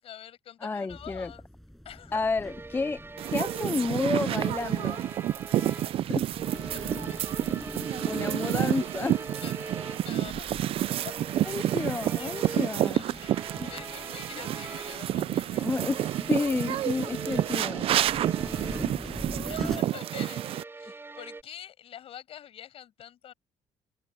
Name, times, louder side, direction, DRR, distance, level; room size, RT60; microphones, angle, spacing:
voice 1, 0.0-1.4 1.8-2.3 5.6-5.9 6.7-7.0 7.9-8.2 9.3-9.5 10.0-10.8 11.0-11.1 12.1-15.8 19.5-23.3, left 10 dB, 65° left, 7.3 m, -46 dB
voice 2, 0.6-1.3 2.1-3.0 3.3-5.0 5.6-5.7 6.1-6.2 8.1-9.2 11.4-13.0 13.6-13.7 15.6-17.8, left 3 dB, 20° left, 0.5 m, -31 dB
sound 1, 0.9-19.8, equal, ahead, 5.8 m, -44 dB
sound 2, 2.4-6.1 6.4-10.3 10.8-15.2 15.5-19.0 19.8-21.4, right 3 dB, 20° right, 4.9 m, -43 dB
sound 3, 3.2-20.6, right 12 dB, 60° right, 0.4 m, -29 dB
cardioid pair, 90°, 11 cm